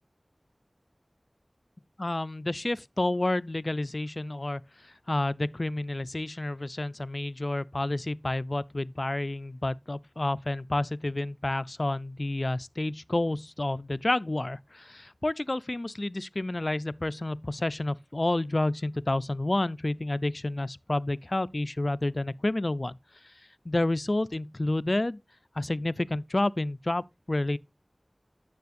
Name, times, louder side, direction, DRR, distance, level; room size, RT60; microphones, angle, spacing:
voice 1, 2.0-23.0 23.2-23.3 23.7-25.2 25.6-27.6, left 2 dB, 50° left, 0.3 m, -30 dB
9.4 x 6.8 x 2.5 m
wide cardioid pair, 45°, 0 cm